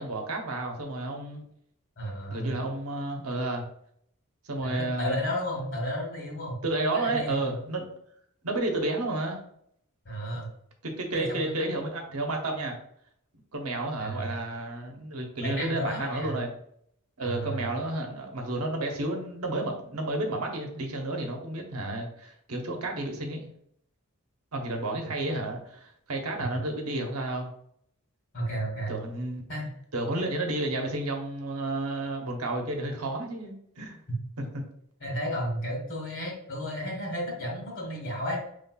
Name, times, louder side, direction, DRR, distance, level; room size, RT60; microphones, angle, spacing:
voice 1, 0.0-1.4 2.3-3.6 4.5-5.2 6.6-7.9 8.4-9.4 10.8-12.7 13.5-16.5 17.2-23.5 24.5-27.5 28.9-29.4 29.9-34.0 34.4-34.6, right 2 dB, 85° right, 2 dB, 0.9 m, -31 dB
voice 2, 2.0-2.6 4.6-7.5 10.0-10.5 11.1-11.9 14.0-14.3 15.4-16.4 17.2-17.7 26.4-26.5 28.3-29.0 29.5-29.7 35.0-38.4, equal, 60° left, -1 dB, 1.6 m, -33 dB
5.4 x 3.2 x 2.3 m, 0.69 s
head